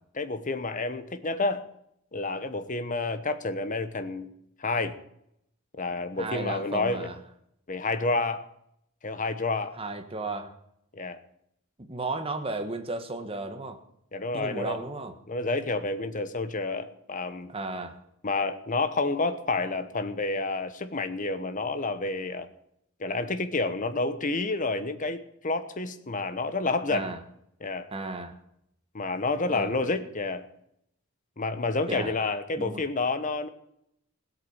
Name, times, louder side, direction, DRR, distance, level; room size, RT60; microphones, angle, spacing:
voice 1, 0.2-1.7 2.1-4.3 4.6-4.9 5.8-7.1 7.7-8.5 9.0-9.8 10.9-11.2 14.1-14.8 15.3-17.5 18.2-22.5 23.0-27.1 27.6-27.9 28.9-30.4 31.4-33.5, left 3 dB, 40° left, 10 dB, 1.1 m, -29 dB
voice 2, 6.2-7.1 9.7-10.5 11.9-13.8 14.3-15.1 17.5-18.0 26.9-27.2 27.9-28.4 29.5-29.9 31.9-32.1 32.6-32.8, right 2 dB, 25° right, 6 dB, 1.4 m, -34 dB
17.0 x 8.5 x 7.3 m, 0.75 s
head